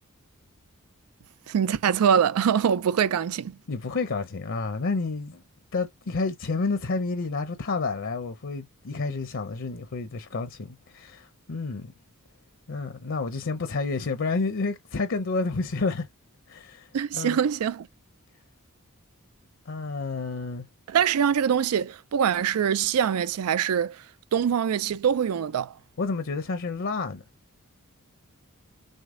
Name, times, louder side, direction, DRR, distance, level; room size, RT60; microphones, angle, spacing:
voice 1, 1.5-3.5 16.9-17.9 20.9-24.0 24.3-25.7, right 8 dB, 90° right, 0.4 m, -24 dB
voice 2, 3.7-5.4 5.7-11.9 12.7-16.1 16.5-16.9 17.1-17.4 19.7-20.7 26.0-27.2, left 3 dB, 60° left, 0.7 m, -30 dB
6.4 x 2.2 x 3.7 m
head